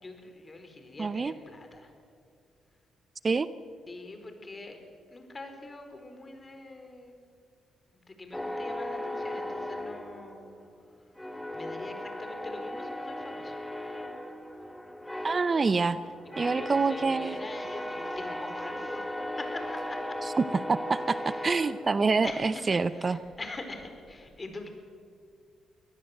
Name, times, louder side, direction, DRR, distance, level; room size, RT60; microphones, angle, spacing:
voice 1, 0.0-1.9 3.9-4.8 5.1-7.1 7.9-10.6 11.5-13.6 16.4-19.0 19.4-20.2 21.1-21.7 22.2-24.7, left 2 dB, 30° left, 6 dB, 4.5 m, -43 dB
voice 2, 1.0-1.3 3.2-3.5 15.2-16.0 16.4-17.4 20.2-23.2, right 4 dB, 40° right, 14 dB, 0.7 m, -26 dB
sound 1, 8.3-10.8 11.2-22.4, left 1 dB, 10° left, 2.9 m, -37 dB
23.5 x 18.0 x 7.9 m, 2.3 s
supercardioid pair, 65°, 0 cm